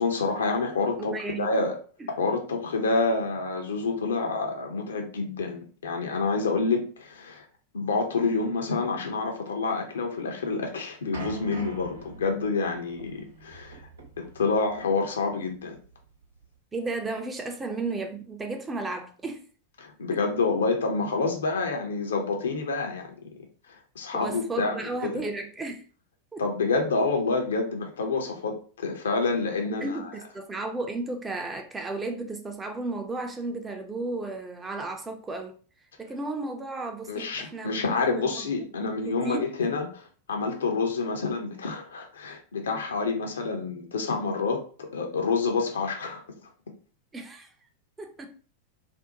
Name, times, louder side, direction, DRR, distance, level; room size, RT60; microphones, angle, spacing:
voice 1, 0.0-1.8 2.1-7.4 7.7-13.8 14.4-15.8 19.8-23.3 24.0-25.1 26.4-30.0 37.1-46.2, left 4 dB, 65° left, 0.6 m, -28 dB
voice 2, 1.0-1.5 2.0-2.1 16.7-19.4 24.1-25.8 26.3-26.4 29.6-35.5 36.0-38.5 38.8-39.5 47.1-47.5 48.0-48.3, right 3 dB, 15° right, 0.4 m, -34 dB
sound 1, 11.1-16.5, right 2 dB, 80° right, 0.8 m, -44 dB
2.5 x 2.1 x 2.7 m
figure-of-eight pair, 90°, 0 cm